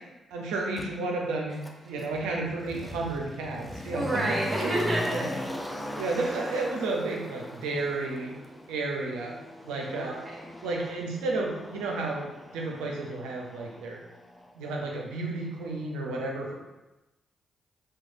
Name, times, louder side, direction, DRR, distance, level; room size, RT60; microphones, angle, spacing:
voice 1, 0.3-4.7 5.1-5.3 6.0-8.4 8.7-9.4 9.6-10.2 10.6-12.3 12.5-14.0 14.5-16.5, right 3 dB, 85° right, -1 dB, 0.4 m, -32 dB
Motor vehicle (road), 0.8-0.9 1.6-14.5 14.8-14.9, left 1 dB, 15° left, 0.4 m, -40 dB
voice 2, 3.9-5.2 10.0-10.5, right 1 dB, 35° right, -2 dB, 0.9 m, -29 dB
3.1 x 2.2 x 2.5 m, 1.0 s
hypercardioid pair, 45°, 0 cm